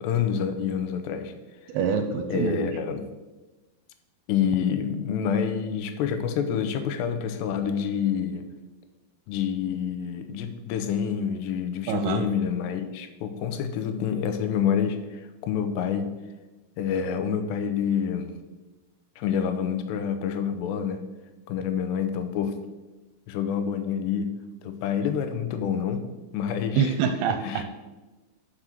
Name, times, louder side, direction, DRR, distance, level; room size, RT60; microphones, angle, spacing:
voice 1, 0.0-1.3 2.3-3.1 4.3-8.4 9.3-16.1 16.8-18.3 19.2-21.0 21.5-22.5 23.3-24.3 24.6-26.0 26.3-26.9 27.4-27.6, left 8 dB, 90° left, 8 dB, 2.9 m, -27 dB
voice 2, 1.7-2.7 11.9-12.2 26.8-27.6, right 6 dB, 80° right, 7 dB, 2.4 m, -25 dB
6.0 x 5.9 x 6.7 m, 1.1 s
omnidirectional pair, 4.8 m